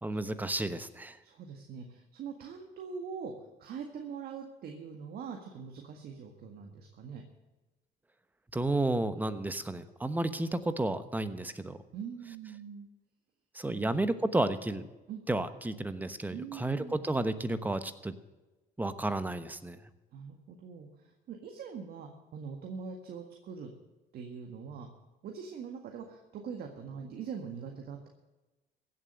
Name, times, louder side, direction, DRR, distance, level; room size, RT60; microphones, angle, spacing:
voice 1, 0.0-1.2 8.5-11.8 13.5-14.9 15.3-18.1 18.8-19.8, right 2 dB, 10° right, 11 dB, 1.0 m, -32 dB
voice 2, 1.2-3.3 3.6-7.2 11.9-12.9 13.7-13.9 15.1-15.2 16.3-16.9 20.1-23.7 24.1-24.9 25.2-28.1, right 6 dB, 65° right, 3 dB, 1.8 m, -43 dB
15.5 x 7.5 x 7.7 m, 1.1 s
cardioid pair, 110°, 17 cm